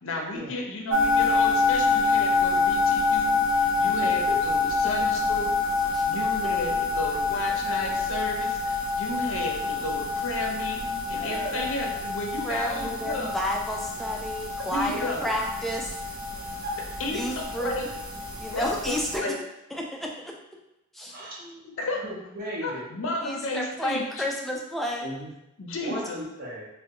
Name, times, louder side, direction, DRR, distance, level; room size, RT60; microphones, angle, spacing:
voice 1, 0.0-13.3 14.7-15.2 17.0-17.9 18.5-19.4 21.6-22.0 22.6-24.2 25.6-26.2, left 2 dB, 65° left, 1 dB, 0.6 m, -33 dB
sound 1, 0.9-19.2, left 3 dB, 80° right, 0.6 m, -27 dB
voice 2, 11.2-11.6 16.6-16.8 21.1-21.3 22.0-22.9 25.0-25.3 25.8-26.7, equal, 45° right, -4 dB, 0.8 m, -35 dB
voice 3, 12.4-16.0 17.1-17.8 18.4-19.3 19.7-20.4 20.9-21.7 23.2-25.1 25.9-26.1, equal, ahead, -1 dB, 0.3 m, -31 dB
3.4 x 2.2 x 2.8 m, 0.90 s
head